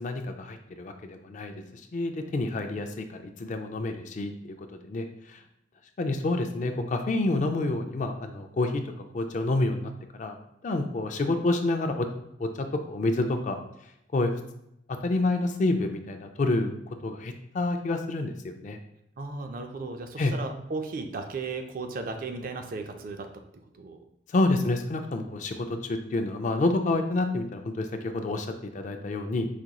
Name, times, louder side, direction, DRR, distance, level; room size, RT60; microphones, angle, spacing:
voice 1, 0.0-5.4 6.0-8.8 9.1-10.3 10.6-12.1 12.4-13.6 14.1-14.3 14.9-16.7 17.0-18.8 20.2-20.3 24.3-28.5 28.7-29.5, left 2 dB, 45° left, 6 dB, 0.4 m, -28 dB
voice 2, 19.2-23.3 23.7-24.0, right 3 dB, 50° right, 5 dB, 0.4 m, -35 dB
5.0 x 2.9 x 2.2 m, 0.80 s
head